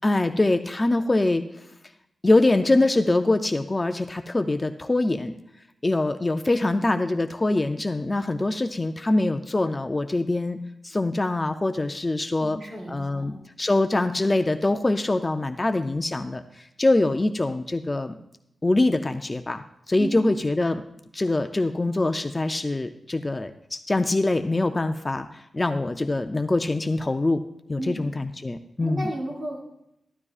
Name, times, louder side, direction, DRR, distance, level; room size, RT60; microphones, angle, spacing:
voice 1, 0.0-1.4 2.2-5.3 5.8-12.6 12.9-13.3 13.6-18.2 18.6-20.8 21.1-27.4 27.7-29.1, left 2 dB, 20° left, 8 dB, 0.4 m, -24 dB
voice 2, 12.4-13.4 20.0-20.3 27.8-28.0 28.8-29.6, right 1 dB, 50° right, -3 dB, 3.5 m, -33 dB
13.5 x 12.5 x 2.4 m, 0.81 s
wide cardioid pair, 175°, 0 cm